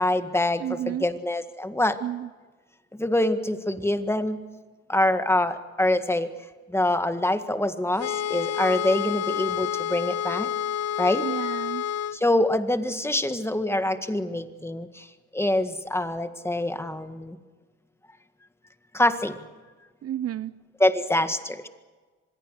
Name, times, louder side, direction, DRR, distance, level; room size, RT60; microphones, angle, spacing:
voice 1, 0.0-2.0 2.9-4.4 4.9-6.3 6.7-10.5 11.0-11.3 12.1-15.1 15.3-17.4 18.9-19.4 20.8-21.7, left 1 dB, 10° left, 9 dB, 1.7 m, -25 dB
voice 2, 0.6-1.1 2.0-2.3 11.2-11.8 20.0-20.5, right 11 dB, 55° right, 17 dB, 0.6 m, -31 dB
sound 1, 8.0-12.2, left 9 dB, 55° left, 0.7 m, -29 dB
25.0 x 21.5 x 6.6 m, 1.3 s
cardioid pair, 90°, 30 cm